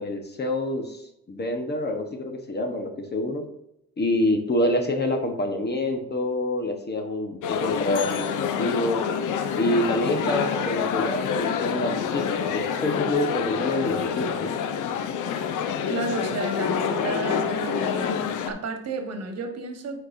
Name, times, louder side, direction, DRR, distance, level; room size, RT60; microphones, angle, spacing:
voice 1, 0.0-3.4 4.0-9.1 9.5-14.5, left 1 dB, 35° left, 4 dB, 1.2 m, -27 dB
sound 1, 7.4-18.5, left 7 dB, 80° left, 0.7 m, -27 dB
voice 2, 15.9-18.2 18.4-20.0, right 4 dB, 55° right, 5 dB, 1.4 m, -32 dB
9.5 x 4.3 x 2.7 m, 0.81 s
cardioid pair, 90°, 30 cm